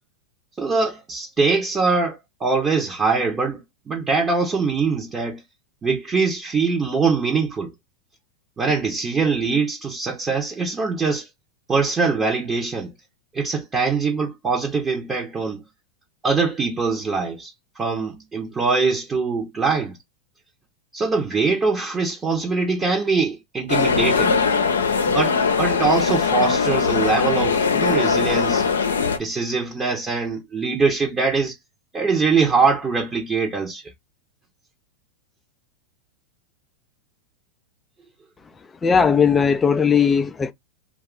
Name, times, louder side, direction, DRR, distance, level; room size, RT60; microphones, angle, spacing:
voice 1, 0.6-5.4 5.8-7.7 8.6-11.3 11.7-12.9 13.3-15.6 16.2-20.0 20.9-24.4 25.1-28.7 29.2-31.6 31.9-33.8, right 4 dB, 20° right, 0.8 m, -23 dB
sound 1, 23.7-29.2, left 5 dB, 90° left, 0.5 m, -20 dB
voice 2, 38.8-40.5, left 6 dB, 15° left, 0.3 m, -18 dB
2.6 x 2.3 x 3.7 m
hypercardioid pair, 105°, 0 cm